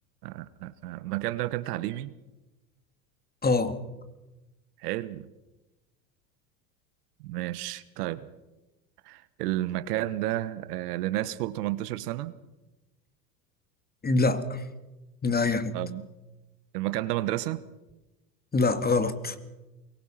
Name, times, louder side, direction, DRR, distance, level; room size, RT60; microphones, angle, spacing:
voice 1, 0.2-2.1 4.8-5.3 7.2-8.3 9.0-12.3 15.7-16.1 16.7-17.6, right 15 dB, 70° right, 15 dB, 1.3 m, -31 dB
voice 2, 3.4-3.8 14.0-14.6 15.2-15.7 18.5-19.4, left 3 dB, 20° left, 10 dB, 2.4 m, -24 dB
24.0 x 22.5 x 5.9 m, 1.1 s
hypercardioid pair, 85°, 48 cm